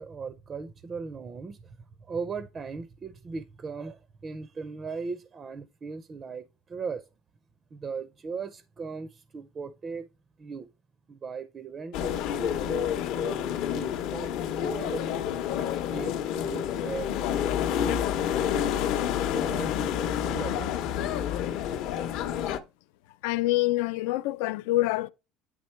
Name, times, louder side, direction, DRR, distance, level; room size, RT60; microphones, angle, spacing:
voice 1, 0.0-7.1 7.7-10.1 10.4-10.7 11.1-15.3 15.6-18.1 19.3-21.1, right 5 dB, 20° right, 0.4 m, -38 dB
Weimar Theaterplatz, 11.9-22.6, left 9 dB, 55° left, 0.7 m, -29 dB
voice 2, 23.2-25.1, left 18 dB, 90° left, 0.4 m, -26 dB
9.6 x 3.7 x 4.4 m
cardioid pair, 165°, 0 cm